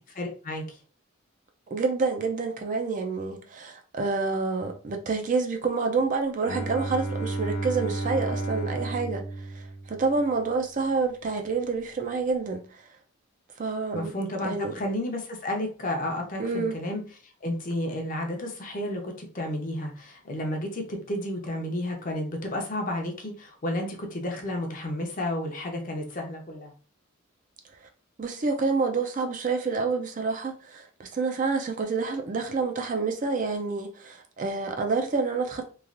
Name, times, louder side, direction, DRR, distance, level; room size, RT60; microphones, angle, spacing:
voice 1, 0.1-0.8 13.9-17.0 17.4-26.7, left 1 dB, 40° left, 0.6 m, -32 dB
voice 2, 1.7-12.8 13.6-14.1 14.4-14.7 16.4-16.7 28.2-35.7, right 4 dB, 35° right, 0.4 m, -28 dB
Bowed string instrument, 6.4-10.4, right 2 dB, 80° left, 0.7 m, -32 dB
3.1 x 2.3 x 2.4 m
head